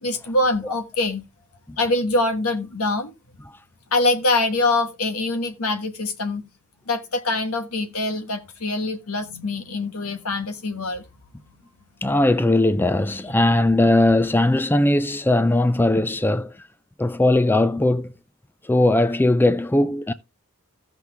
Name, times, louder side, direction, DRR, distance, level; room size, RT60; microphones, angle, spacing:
voice 1, 0.0-1.2 1.8-3.1 3.9-6.5 6.9-11.1 13.2-13.3, left 2 dB, 85° left, 1.4 m, -24 dB
voice 2, 12.0-16.5 17.0-18.1 18.7-20.1, left 1 dB, 10° left, 0.4 m, -19 dB
15.5 x 5.9 x 3.4 m
head